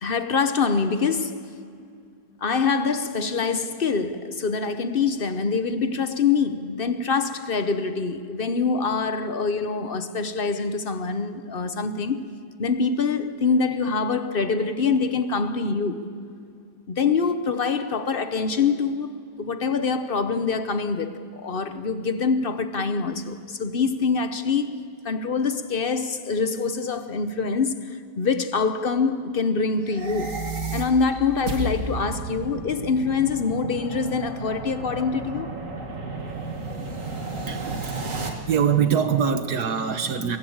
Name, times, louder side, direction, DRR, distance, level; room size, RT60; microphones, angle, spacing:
voice 1, 0.0-1.4 2.4-12.2 12.6-16.0 16.9-24.7 25.0-30.4 30.7-35.5, left 5 dB, 40° left, 0.9 m, -25 dB
sound 1, 29.8-38.3, right 2 dB, 50° right, 2.5 m, -33 dB
voice 2, 37.5-40.4, right 7 dB, 70° right, 1.5 m, -24 dB
22.5 x 22.5 x 8.7 m
omnidirectional pair, 1.8 m